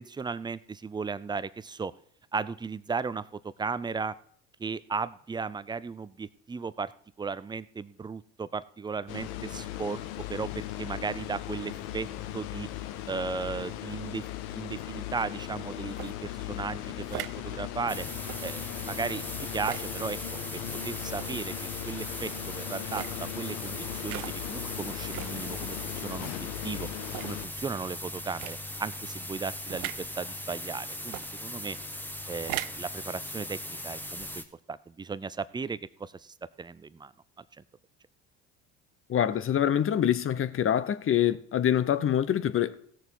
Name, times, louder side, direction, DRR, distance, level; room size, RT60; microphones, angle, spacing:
voice 1, 0.0-1.9 2.3-4.1 4.6-6.9 7.2-10.0 10.3-12.1 12.3-12.7 13.1-14.3 14.5-18.0 18.4-19.2 19.5-20.2 20.5-21.5 21.8-26.9 27.2-31.8 32.3-37.1, right 5 dB, 10° right, 0.4 m, -36 dB
sound 1, 9.1-27.5, left 12 dB, 75° left, 0.9 m, -38 dB
sound 2, 15.9-16.1 17.0-17.4 18.2-18.4 19.5-19.9 21.1-21.4 22.8-23.1 24.0-24.4 25.1-25.4 26.1-26.2 27.0-27.4 28.3-28.6 29.7-30.0 31.0-31.3 32.3-32.8, right 19 dB, 70° right, 0.5 m, -38 dB
sound 3, 17.9-34.4, left 1 dB, 5° left, 1.2 m, -39 dB
voice 2, 39.1-42.8, left 10 dB, 35° left, 0.8 m, -25 dB
16.0 x 6.7 x 4.6 m
hypercardioid pair, 75°, 38 cm